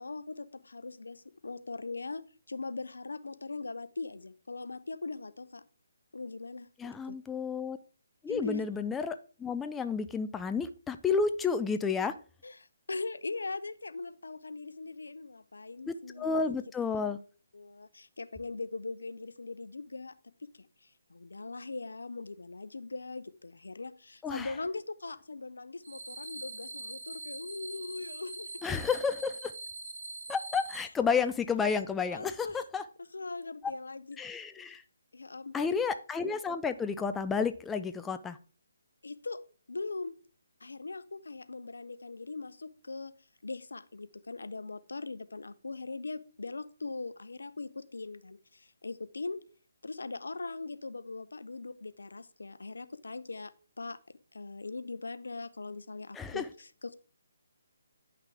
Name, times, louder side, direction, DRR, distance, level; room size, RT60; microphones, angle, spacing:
voice 1, 0.0-2.2 2.5-5.6 6.1-7.2 8.3-8.6 12.4-17.0 17.5-20.1 20.4-28.5 32.1-32.6 33.1-34.2 35.1-35.7 39.0-39.4 39.7-40.1 40.6-43.1 43.4-49.4 49.8-56.9, left 3 dB, 80° left, 0.7 m, -40 dB
voice 2, 6.8-7.8 8.2-12.1 15.9-17.2 24.2-24.5 28.6-29.5 30.3-32.8 33.6-33.7 34.2-34.8 35.5-38.4 56.1-56.5, left 5 dB, 10° left, 0.4 m, -31 dB
sound 1, 25.8-30.8, right 2 dB, 70° right, 1.9 m, -43 dB
9.8 x 5.8 x 3.4 m
figure-of-eight pair, 150°, 0 cm